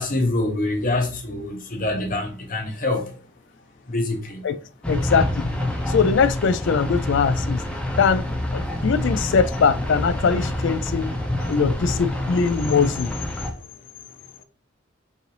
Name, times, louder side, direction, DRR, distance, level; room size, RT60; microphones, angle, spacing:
voice 1, 0.0-3.1 3.9-4.4, left 2 dB, 45° left, 0.9 m, -25 dB
sound 1, 4.8-13.5, left 1 dB, 5° left, 0.6 m, -27 dB
voice 2, 4.9-5.5 5.9-7.6 8.0-8.2 8.5-11.2 11.5-13.1, left 5 dB, 60° left, 0.4 m, -21 dB
5.3 x 2.6 x 3.2 m
head